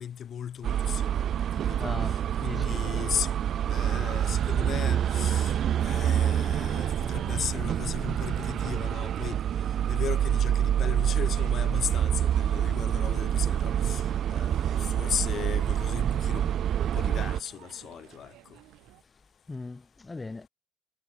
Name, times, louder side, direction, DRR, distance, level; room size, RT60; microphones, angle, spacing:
voice 1, 0.0-3.4 3.6-9.4 9.9-18.4, left 9 dB, 50° left, 7.5 m, -37 dB
sound 1, 0.6-17.4, right 10 dB, 55° right, 1.3 m, -27 dB
voice 2, 1.8-3.2 19.5-20.5, left 3 dB, 15° left, 1.2 m, -39 dB
sound 2, 2.7-19.0, right 17 dB, 85° right, 5.9 m, -53 dB
cardioid pair, 130°, 0 cm